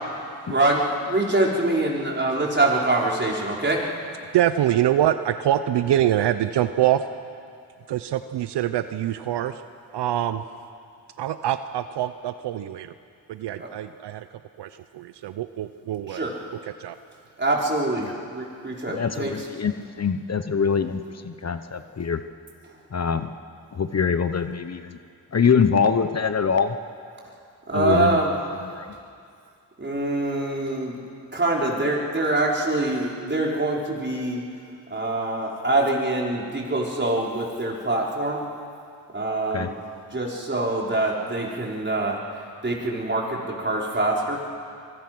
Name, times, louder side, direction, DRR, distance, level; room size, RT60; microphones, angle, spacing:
voice 1, 0.5-3.8 13.6-13.7 16.1-16.3 17.4-19.5 27.7-28.3 29.8-31.0 31.3-34.4 34.9-38.4 39.1-39.8 40.1-42.2 42.6-44.4, right 2 dB, 25° right, -2 dB, 5.2 m, -24 dB
voice 2, 4.3-7.1 7.9-9.6 9.9-10.4 11.2-12.9 13.3-16.3 16.6-17.0, right 12 dB, 75° right, 11 dB, 0.8 m, -25 dB
voice 3, 18.9-22.2 22.9-23.3 23.7-25.0 25.3-26.8 27.7-28.2 28.6-28.9 39.5-39.7, left 6 dB, 40° left, 9 dB, 1.1 m, -24 dB
24.5 x 21.0 x 6.3 m, 2.3 s
supercardioid pair, 60°, 41 cm